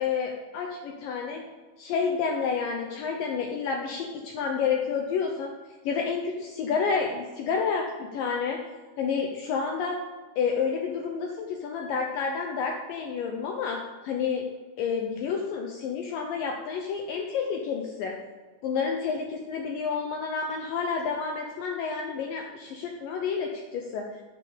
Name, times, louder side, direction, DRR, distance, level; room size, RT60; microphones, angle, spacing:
voice 1, 0.0-1.4 1.8-5.5 5.8-8.6 9.0-10.0 10.4-14.4 14.8-18.1 18.6-24.1, left 6 dB, 90° left, 2 dB, 1.9 m, -29 dB
9.5 x 5.3 x 6.8 m, 1.3 s
omnidirectional pair, 5.0 m